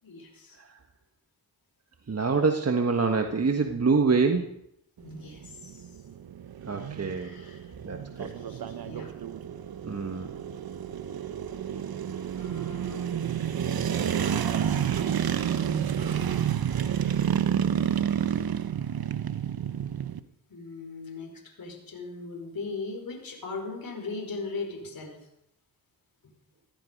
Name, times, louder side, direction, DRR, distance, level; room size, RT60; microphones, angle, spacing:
voice 1, 0.0-0.6 5.0-5.9 7.1-7.6 8.2-9.1 12.3-13.1 15.5-16.3 20.5-25.2, left 3 dB, 55° left, 2 dB, 5.1 m, -39 dB
voice 2, 2.1-4.5 6.7-7.3 7.8-8.3 9.8-10.3, right 4 dB, 35° right, 5 dB, 1.4 m, -25 dB
sound 1, 5.0-20.2, right 9 dB, 60° right, 1.1 m, -30 dB
15.5 x 14.5 x 5.3 m, 0.79 s
supercardioid pair, 45°, 41 cm